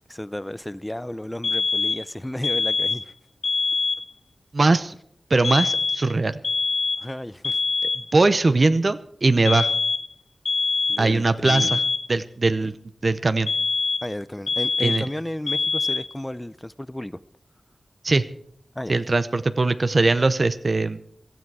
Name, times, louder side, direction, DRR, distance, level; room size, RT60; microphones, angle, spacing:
voice 1, 0.0-3.1 7.0-7.6 10.9-11.8 12.6-12.7 14.0-17.2 18.7-18.9, left 1 dB, 10° left, 0.5 m, -33 dB
sound 1, 1.4-2.1 2.4-3.1 3.4-4.1 5.4-6.1 6.4-7.1 7.4-8.1 9.5-10.1 10.5-11.1 11.5-12.1 13.5-14.1 14.5-15.1 15.5-16.1, left 4 dB, 80° left, 0.6 m, -24 dB
voice 2, 4.5-4.9 5.3-6.4 8.1-9.7 11.0-11.8 12.1-12.7 13.0-13.5 14.8-15.1 18.0-18.2 18.9-21.0, right 3 dB, 50° right, 0.7 m, -20 dB
17.0 x 13.0 x 4.8 m
wide cardioid pair, 80°, 0 cm